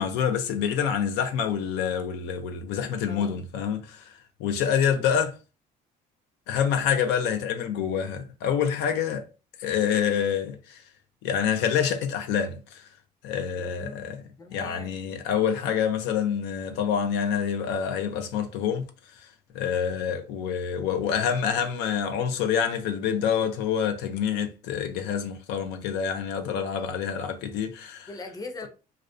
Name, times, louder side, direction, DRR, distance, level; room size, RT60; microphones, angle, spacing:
voice 1, 0.0-4.1 4.4-5.4 6.5-9.2 9.6-10.8 11.2-12.8 13.2-14.2 14.5-18.9 19.5-28.1, left 8 dB, 90° left, 0.4 m, -27 dB
voice 2, 3.1-3.5 13.6-15.0 28.1-28.7, left 3 dB, 20° left, 0.5 m, -41 dB
2.4 x 2.1 x 2.4 m
cardioid pair, 110°, 17 cm